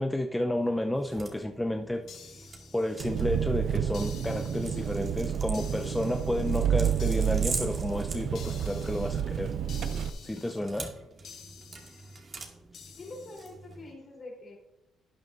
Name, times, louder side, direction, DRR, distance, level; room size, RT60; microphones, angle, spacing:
voice 1, 0.0-2.1 2.7-9.5 10.2-10.9, left 1 dB, 10° left, 4 dB, 0.6 m, -31 dB
sound 1, 0.5-13.9, right 3 dB, 45° right, 2.1 m, -44 dB
sound 2, 2.1-3.4 3.9-5.1 5.5-6.5 7.0-7.8 8.3-9.2 9.7-10.6 11.2-12.2 12.7-13.5, left 7 dB, 70° left, 1.1 m, -50 dB
Engine, 3.0-10.1, right 9 dB, 70° right, 0.5 m, -30 dB
voice 2, 12.9-14.6, left 2 dB, 45° left, 0 dB, 3.8 m, -44 dB
12.0 x 8.9 x 2.6 m, 0.94 s
cardioid pair, 90°, 0 cm